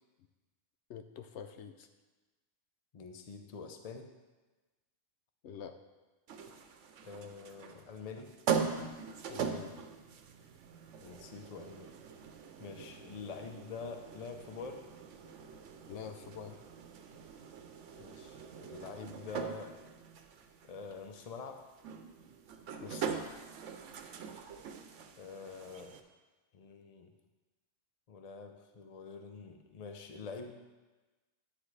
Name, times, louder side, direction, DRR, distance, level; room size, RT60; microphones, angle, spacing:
voice 1, 0.9-1.9 5.4-5.8 9.3-9.8 15.9-16.6 22.8-23.4, left 7 dB, 75° left, 8 dB, 0.9 m, -45 dB
voice 2, 2.9-4.1 7.0-8.3 11.0-11.9 12.6-14.9 18.0-19.7 20.7-21.6 25.2-26.0 26.5-27.1 28.1-30.5, left 4 dB, 40° left, 5 dB, 0.7 m, -46 dB
sound 1, 6.3-26.0, right 6 dB, 85° right, 1.0 m, -42 dB
9.8 x 9.0 x 3.3 m, 1.2 s
omnidirectional pair, 1.2 m